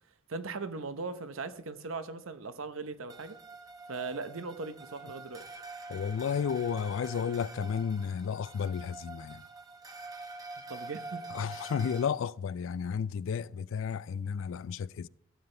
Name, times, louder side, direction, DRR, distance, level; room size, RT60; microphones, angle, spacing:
voice 1, 0.3-3.4 3.9-5.5 10.7-11.2, right 3 dB, 80° right, 0.8 m, -39 dB
sound 1, 3.1-12.1, right 3 dB, 20° right, 0.8 m, -46 dB
voice 2, 5.9-9.4 11.3-15.1, left 7 dB, 70° left, 0.3 m, -32 dB
15.5 x 8.9 x 3.3 m
head